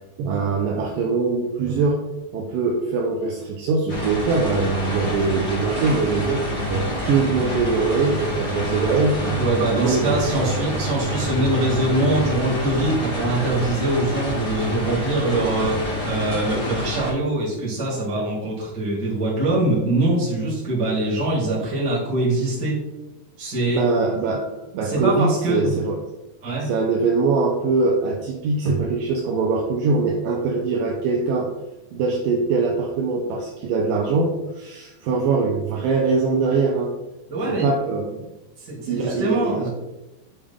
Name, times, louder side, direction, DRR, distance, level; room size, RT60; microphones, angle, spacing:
voice 1, 0.2-2.0 2.3-10.7 12.0-12.1 23.7-26.0 26.6-31.5 31.9-36.9 37.5-38.2 38.9-39.7, right 4 dB, 80° right, 0 dB, 2.1 m, -22 dB
sound 1, 3.9-17.1, left 1 dB, 50° left, 0.7 m, -28 dB
sound 2, 5.7-14.4, right 6 dB, 60° right, 2.6 m, -35 dB
voice 2, 9.3-22.8 23.4-23.8 24.8-25.6 26.4-26.7 37.3-37.7 38.6-39.7, right 2 dB, 35° right, -6 dB, 2.2 m, -23 dB
8.7 x 3.4 x 3.4 m, 1.0 s
omnidirectional pair, 4.3 m